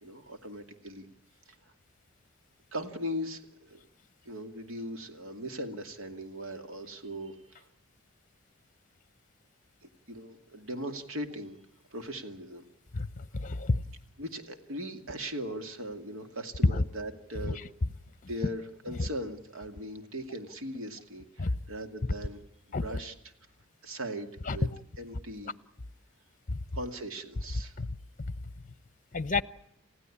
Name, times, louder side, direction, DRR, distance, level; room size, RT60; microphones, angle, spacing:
voice 1, 0.0-1.1 2.7-3.8 4.2-7.7 10.1-11.6 11.9-12.6 14.2-17.6 18.3-22.4 22.8-23.1 23.8-24.7 25.0-25.5 26.7-27.8, equal, 65° right, 2.5 m, -39 dB
voice 2, 12.9-13.8 16.6-16.8 17.4-17.5 19.0-19.1 21.4-21.5 22.7-22.8 24.5-24.7 26.5-26.6 27.8-27.9 28.3-28.4 29.1-29.4, left 3 dB, 40° left, 0.8 m, -28 dB
30.0 x 16.0 x 8.6 m
head